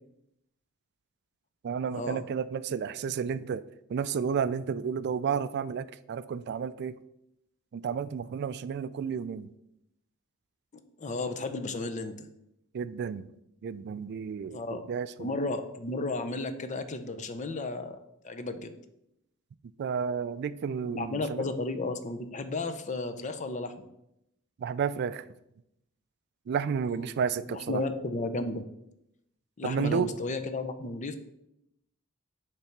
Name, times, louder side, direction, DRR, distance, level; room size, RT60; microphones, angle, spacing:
voice 1, 1.6-7.0 7.7-9.5 12.7-13.3 13.6-15.4 19.8-21.4 24.6-25.3 26.5-27.8 29.6-30.1, right 6 dB, 50° right, 16 dB, 0.3 m, -32 dB
voice 2, 11.0-12.3 14.5-14.8 15.2-18.0 18.2-18.7 20.8-23.8 26.9-27.1 27.5-28.6 29.6-31.2, left 2 dB, 35° left, 9 dB, 0.6 m, -33 dB
6.9 x 3.4 x 5.8 m, 0.82 s
head